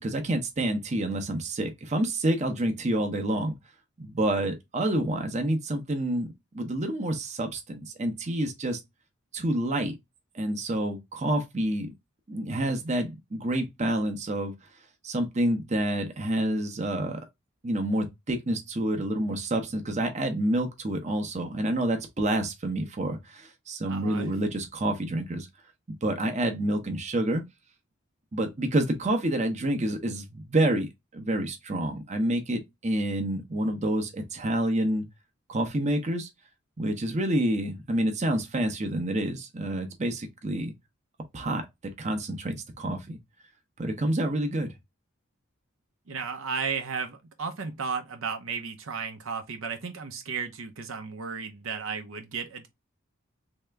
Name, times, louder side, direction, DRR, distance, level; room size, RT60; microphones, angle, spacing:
voice 1, 0.0-3.6 4.0-8.8 9.3-10.0 10.3-11.9 12.3-14.5 15.0-17.2 17.6-25.5 26.0-27.4 28.3-35.0 35.5-36.3 36.8-40.7 41.3-41.7 42.0-43.2 43.8-44.7, right 1 dB, 35° right, 0.7 m, -28 dB
voice 2, 23.8-24.3 46.1-52.7, right 5 dB, 75° right, 0.7 m, -34 dB
3.3 x 2.8 x 3.3 m
head